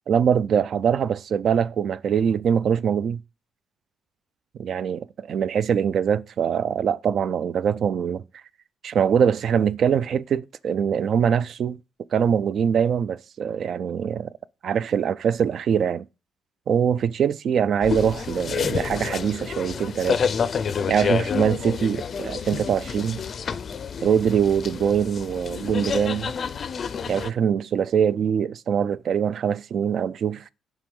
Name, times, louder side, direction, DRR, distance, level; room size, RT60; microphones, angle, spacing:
voice 1, 0.1-3.2 4.6-8.4 8.8-11.8 12.1-14.3 14.6-16.0 16.7-20.2 20.9-23.2 24.0-26.3 27.1-30.5, right 7 dB, 60° right, 0.3 m, -23 dB
sound 1, 17.8-27.3, left 6 dB, 50° left, 0.4 m, -29 dB
5.9 x 3.8 x 5.3 m
cardioid pair, 90°, 0 cm